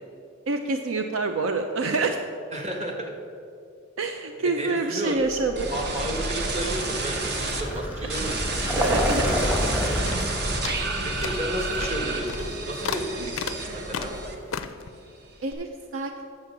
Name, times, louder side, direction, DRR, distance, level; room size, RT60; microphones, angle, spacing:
voice 1, 0.5-2.2 4.0-5.7 8.8-9.2 15.4-16.3, right 3 dB, 70° right, 6 dB, 0.5 m, -27 dB
voice 2, 2.5-3.1 4.4-5.2 5.7-8.4 9.0-10.0 11.0-14.1, right 1 dB, 35° right, 1 dB, 1.2 m, -32 dB
Vehicle, 5.3-14.1, equal, 10° right, 1.0 m, -30 dB
sound 1, 5.6-7.6 8.1-14.6 15.0-15.5, right 3 dB, 55° right, 0.9 m, -31 dB
sound 2, 7.5-9.1 9.4-9.8 10.1-10.3 10.6-14.9, left 7 dB, 75° left, 0.4 m, -36 dB
7.7 x 7.4 x 5.9 m, 2.5 s
head